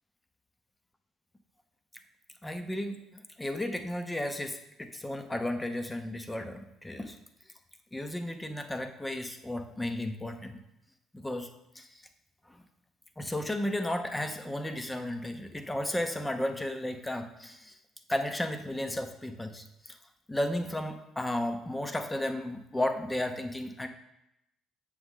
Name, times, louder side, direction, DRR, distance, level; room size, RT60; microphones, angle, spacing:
voice 1, 2.4-7.2 7.9-10.6 11.1-11.9 13.2-17.8 18.1-20.0 20.3-23.9, left 1 dB, 10° left, 8 dB, 0.7 m, -34 dB
7.9 x 5.0 x 3.6 m, 0.87 s
figure-of-eight pair, 50°, 0 cm